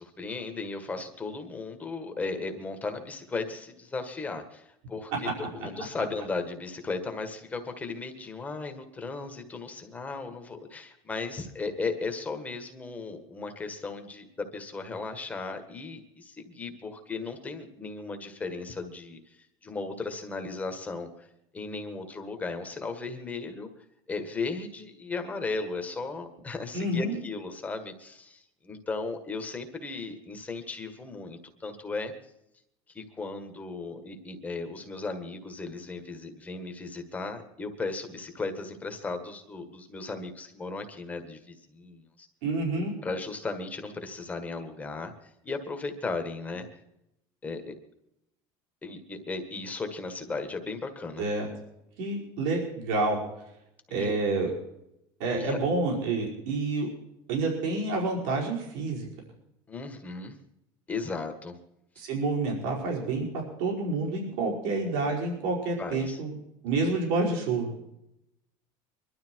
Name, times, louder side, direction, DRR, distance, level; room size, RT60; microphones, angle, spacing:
voice 1, 0.0-21.3 21.5-23.7 24.1-32.1 32.9-42.3 43.0-46.8 47.4-47.7 48.8-51.2 53.9-54.1 55.3-55.6 59.7-60.4 60.9-61.5 65.8-66.2, left 3 dB, 15° left, 6 dB, 1.7 m, -36 dB
voice 2, 26.7-27.1 42.4-42.9 51.2-51.5 52.0-53.2 53.9-54.5 55.2-56.9 57.3-59.1 62.0-63.3 63.6-66.4 66.6-67.7, right 3 dB, 80° right, -2 dB, 5.1 m, -28 dB
23.0 x 12.5 x 4.7 m, 0.83 s
cardioid pair, 160°, 10 cm